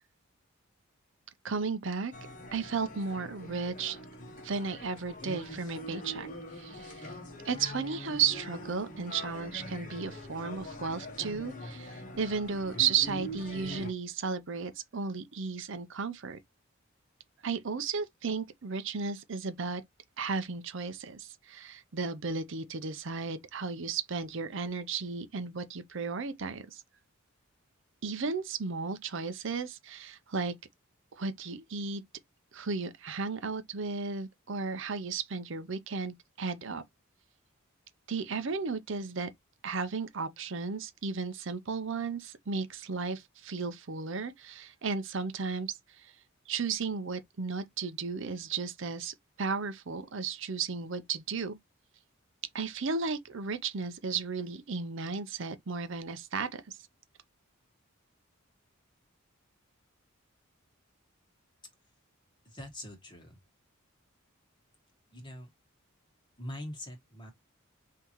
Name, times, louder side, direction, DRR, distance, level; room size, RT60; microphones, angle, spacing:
voice 1, 1.4-2.1 2.5-4.0 4.4-6.3 6.5-7.1 7.4-16.4 17.4-19.8 20.2-26.8 28.0-30.5 31.2-32.0 32.5-36.8 38.1-39.3 39.6-46.1 46.5-51.6 52.5-56.8, right 5 dB, 60° right, 0.6 m, -34 dB
sound 1, 2.1-13.9, left 1 dB, 40° left, 1.1 m, -43 dB
voice 2, 62.5-63.4 65.1-65.5 66.4-67.3, left 1 dB, 20° left, 1.6 m, -43 dB
5.6 x 2.8 x 3.0 m
head